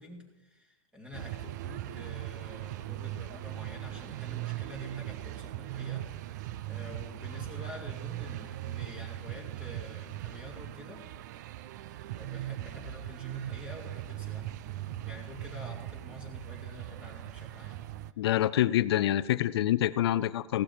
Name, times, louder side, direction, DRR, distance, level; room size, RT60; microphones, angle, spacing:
voice 1, 0.0-11.1 11.7-17.8, left 2 dB, 5° right, 1 dB, 2.5 m, -48 dB
sound 1, 1.1-18.1, right 14 dB, 30° right, 0.4 m, -39 dB
voice 2, 18.2-20.6, left 13 dB, 50° left, 16 dB, 0.6 m, -26 dB
16.5 x 12.0 x 4.4 m, 1.0 s
hypercardioid pair, 165°, 18 cm